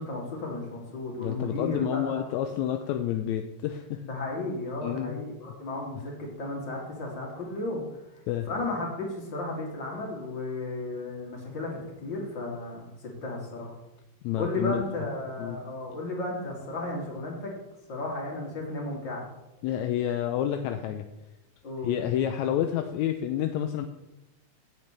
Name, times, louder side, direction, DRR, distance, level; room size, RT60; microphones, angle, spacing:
voice 1, 0.0-2.3 4.0-7.8 8.5-12.9 13.2-13.8 14.4-17.5 17.9-19.3 21.6-22.0, left 2 dB, 35° left, -2 dB, 3.5 m, -34 dB
voice 2, 1.2-4.0 4.8-5.2 8.3-8.5 14.2-14.8 15.4-15.6 19.6-21.1 21.8-23.9, left 10 dB, 80° left, 7 dB, 1.9 m, -29 dB
16.0 x 9.2 x 3.4 m, 0.97 s
omnidirectional pair, 3.5 m